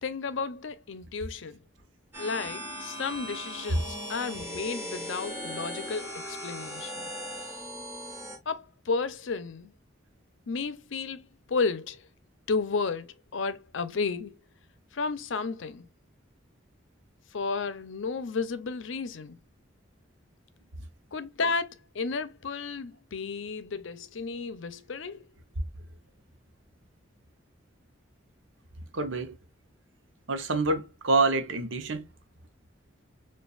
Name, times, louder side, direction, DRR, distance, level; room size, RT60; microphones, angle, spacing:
voice 1, 0.0-1.6 2.2-7.1 8.5-9.7 10.5-12.0 12.5-14.4 14.9-15.9 17.3-19.4 21.1-25.3, left 4 dB, 80° left, 0.6 m, -33 dB
sound 1, 2.1-8.4, equal, 15° right, 1.3 m, -38 dB
voice 2, 28.9-29.4 30.3-32.1, right 3 dB, 80° right, 0.9 m, -27 dB
7.0 x 2.5 x 2.4 m
head